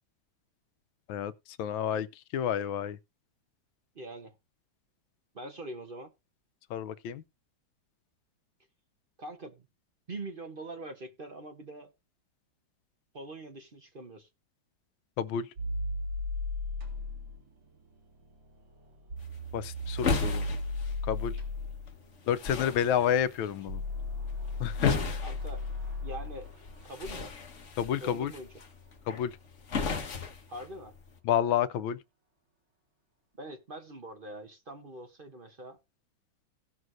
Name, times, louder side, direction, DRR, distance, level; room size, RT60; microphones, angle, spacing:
voice 1, 1.6-2.1 2.3-3.0 6.7-7.2 15.2-15.5 19.5-20.4 21.1-21.4 22.3-23.8 24.6-25.2 27.8-28.3 29.1-29.4 31.2-32.0, left 9 dB, 90° left, 1.4 m, -29 dB
voice 2, 3.9-4.3 5.3-6.1 9.2-9.7 10.1-11.9 13.1-14.3 25.2-25.7 26.0-26.5 26.9-27.3 28.0-28.5 30.5-30.9 33.4-35.8, right 2 dB, 40° right, 0.8 m, -43 dB
sound 1, 15.6-26.8, left 2 dB, 80° right, 2.9 m, -36 dB
sound 2, 19.2-31.2, left 4 dB, 45° left, 1.4 m, -37 dB
17.5 x 6.2 x 2.6 m
omnidirectional pair, 2.1 m